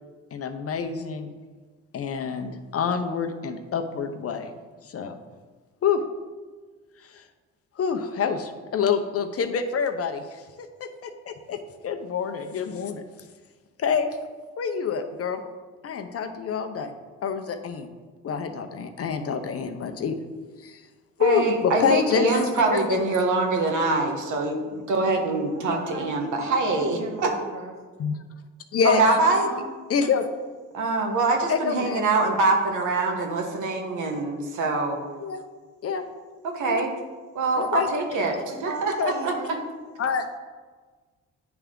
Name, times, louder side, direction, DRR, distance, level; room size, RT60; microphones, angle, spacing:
voice 1, 0.3-1.3 1.9-4.5 4.8-5.1 5.8-6.0 7.0-7.2 7.8-13.0 13.8-14.1 14.6-15.4 15.8-16.9 17.2-17.9 18.2-20.2 20.6-20.8 21.2-23.0 28.0-28.2 28.7-29.0 29.9-30.3 31.5-32.1 35.2-35.4 35.8-36.0 36.7-36.8 37.6-37.9 39.0-39.1 40.0-40.3, left 6 dB, 50° left, 7 dB, 0.7 m, -27 dB
voice 2, 21.2-27.3 28.8-29.5 30.7-35.0 36.5-36.9 37.3-38.3 38.6-39.3, right 3 dB, 80° right, 2 dB, 1.2 m, -24 dB
voice 3, 25.5-27.7 29.2-29.7 38.4-39.5, right 2 dB, 60° right, 1 dB, 1.5 m, -38 dB
9.7 x 3.5 x 3.7 m, 1.4 s
cardioid pair, 90°, 30 cm